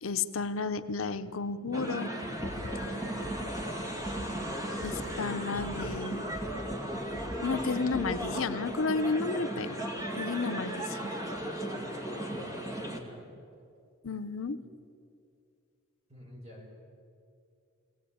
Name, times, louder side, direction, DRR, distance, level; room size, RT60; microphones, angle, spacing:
voice 1, 0.0-2.1 4.8-6.2 7.4-9.9 10.2-11.1 14.0-14.6, left 4 dB, 70° left, 10 dB, 0.7 m, -32 dB
sound 1, 1.7-13.0, right 1 dB, 15° right, 2.2 m, -36 dB
sound 2, 2.4-8.5, equal, 60° right, 2.2 m, -46 dB
voice 2, 12.8-13.3 14.5-14.7 16.1-16.8, equal, 30° right, -1 dB, 5.8 m, -50 dB
23.0 x 17.5 x 8.7 m, 2.5 s
head